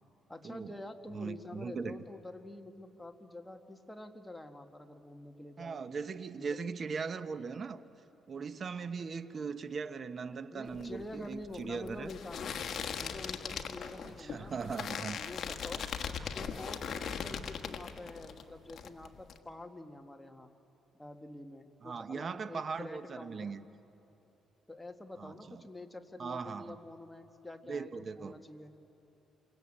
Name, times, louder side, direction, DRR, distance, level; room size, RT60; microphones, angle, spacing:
voice 1, 0.3-5.8 6.3-6.6 8.8-8.9 10.5-12.6 13.0-15.9 16.3-20.5 20.9-23.6 24.7-28.7, left 2 dB, 10° left, 5 dB, 1.8 m, -47 dB
voice 2, 1.1-2.0 5.6-7.8 8.3-12.1 14.0-15.2 21.8-23.6 25.2-25.6 26.2-26.8 27.7-28.4, right 5 dB, 45° right, 12 dB, 1.1 m, -39 dB
sound 1, 10.7-18.4 18.7-19.4, left 7 dB, 60° left, 1.5 m, -39 dB
28.5 x 24.0 x 8.8 m, 3.0 s
cardioid pair, 90°, 0 cm